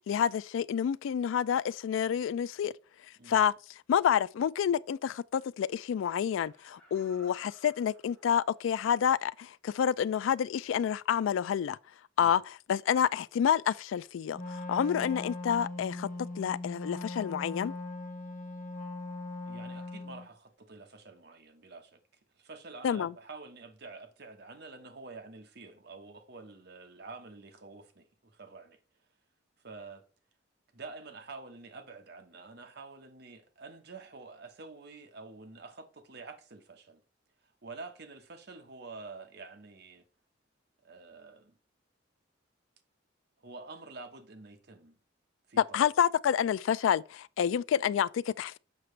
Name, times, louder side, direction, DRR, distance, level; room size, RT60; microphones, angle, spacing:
voice 1, 0.0-2.7 3.3-3.5 3.9-11.8 12.2-16.1 16.4-17.7 22.8-23.1 45.6-48.6, left 8 dB, 80° left, 0.3 m, -28 dB
Laughter, 6.2-8.9 9.3-9.4, right 2 dB, 5° left, 2.2 m, -60 dB
Wind instrument woodwind instrument, 14.3-20.3, left 2 dB, 45° left, 1.4 m, -40 dB
voice 2, 19.4-22.0 22.3-28.8 29.6-30.0 30.7-37.0 37.4-40.0 40.8-41.6 43.4-45.0 45.5-45.9, right 3 dB, 55° right, 1.1 m, -48 dB
7.2 x 5.8 x 3.2 m
head